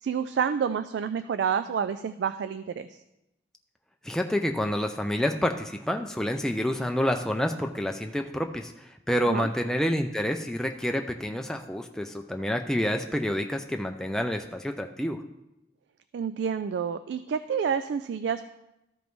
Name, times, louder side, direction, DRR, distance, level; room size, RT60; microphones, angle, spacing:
voice 1, 0.0-3.0 9.2-9.5 16.1-18.5, right 7 dB, 80° right, 12 dB, 0.3 m, -29 dB
voice 2, 4.0-15.2, equal, 5° left, 3 dB, 0.3 m, -28 dB
13.5 x 5.1 x 3.1 m, 0.91 s
head